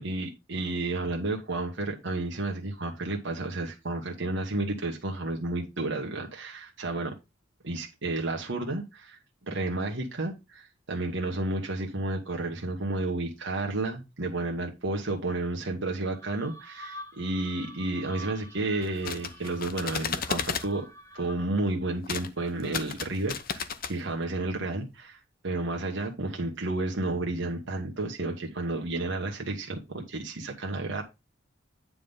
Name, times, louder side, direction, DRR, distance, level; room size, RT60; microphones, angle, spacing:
voice 1, 0.0-7.1 7.6-20.8 21.1-31.0, right 2 dB, 65° right, 1.3 m, -31 dB
sound 1, 16.0-21.7, equal, 15° left, 0.8 m, -47 dB
sound 2, 18.8-20.7 22.0-22.3 22.6-23.9, left 6 dB, 50° left, 0.8 m, -33 dB
9.5 x 3.7 x 5.5 m
head